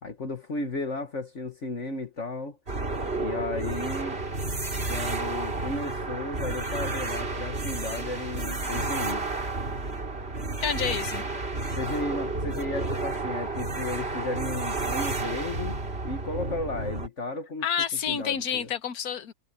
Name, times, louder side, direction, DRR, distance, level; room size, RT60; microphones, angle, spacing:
voice 1, 0.0-2.6 3.2-4.2 4.9-9.3 11.7-15.8 16.0-17.7 18.1-18.7, left 2 dB, 50° left, 1.9 m, -34 dB
sound 1, 2.7-17.1, right 3 dB, 40° right, 3.1 m, -31 dB
voice 2, 10.6-11.2 17.6-19.3, left 8 dB, 70° left, 1.6 m, -29 dB
omnidirectional pair, 1.6 m